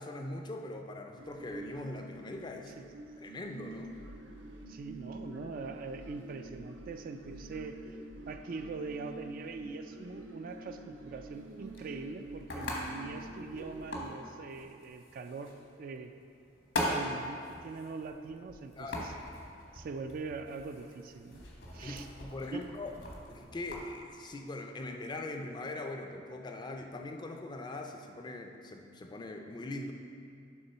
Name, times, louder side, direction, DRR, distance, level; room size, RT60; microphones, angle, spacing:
voice 1, 0.0-2.9 3.2-4.0 18.8-19.0 21.8-22.9 23.3-29.9, left 2 dB, 25° left, 4 dB, 0.4 m, -41 dB
sound 1, 1.2-14.1, right 2 dB, 85° right, 0.6 m, -48 dB
voice 2, 4.7-7.8 8.3-16.1 16.9-19.1 19.7-21.4 21.7-22.1 22.5-22.7, right 4 dB, 50° right, 7 dB, 0.3 m, -42 dB
sound 2, 11.3-23.8, left 1 dB, 75° left, 1.2 m, -41 dB
6.9 x 3.7 x 5.5 m, 2.4 s
head